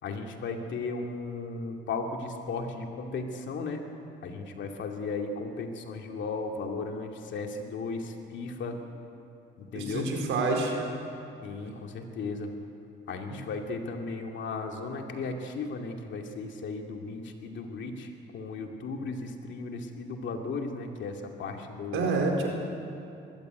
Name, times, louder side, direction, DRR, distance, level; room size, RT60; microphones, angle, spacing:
voice 1, 0.0-3.8 4.2-8.8 9.7-10.1 11.4-12.5 13.1-22.2, left 3 dB, 70° left, 3 dB, 2.6 m, -35 dB
voice 2, 9.7-10.8 21.9-22.5, right 3 dB, 80° right, 1 dB, 4.5 m, -27 dB
21.0 x 16.0 x 9.4 m, 2.7 s
cardioid pair, 90°, 20 cm